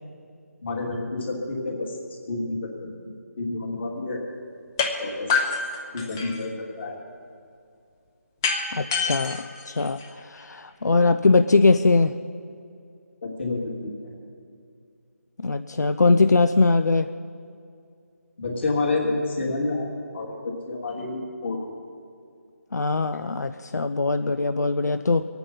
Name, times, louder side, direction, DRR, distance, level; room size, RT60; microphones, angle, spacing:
voice 1, 0.6-2.0 2.3-2.4 2.8-2.9 3.4-4.2 5.0-5.3 5.9-6.9 13.2-13.9 18.4-19.9 20.1-21.6, left 3 dB, 45° left, -1 dB, 3.1 m, -29 dB
sound 1, 4.8-4.9 5.3-6.5 8.4-10.4, left 5 dB, 15° left, 0.6 m, -27 dB
voice 2, 8.7-12.1 15.4-17.1 22.7-25.2, left 3 dB, 90° left, 10 dB, 0.5 m, -21 dB
23.5 x 9.1 x 5.5 m, 2.4 s
figure-of-eight pair, 170°, 9 cm